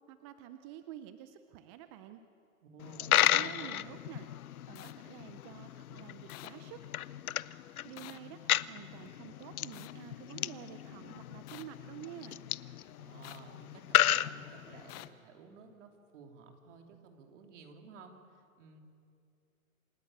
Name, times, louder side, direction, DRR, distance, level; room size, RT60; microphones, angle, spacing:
voice 1, 0.1-2.2 3.3-4.3 4.7-6.8 7.8-12.5, right 11 dB, 20° right, 9 dB, 0.5 m, -49 dB
voice 2, 2.6-3.6 13.0-18.8, right 4 dB, 55° right, 3 dB, 3.1 m, -53 dB
Coin (dropping), 2.8-15.1, left 12 dB, 85° left, 0.6 m, -34 dB
sound 1, 3.1-3.3 4.8-4.9 6.3-6.5 8.0-8.2 9.7-9.9 11.5-11.6 13.2-13.4 14.9-15.1, left 19 dB, 30° left, 0.6 m, -48 dB
27.5 x 11.5 x 8.7 m, 2.4 s
hypercardioid pair, 135°, 42 cm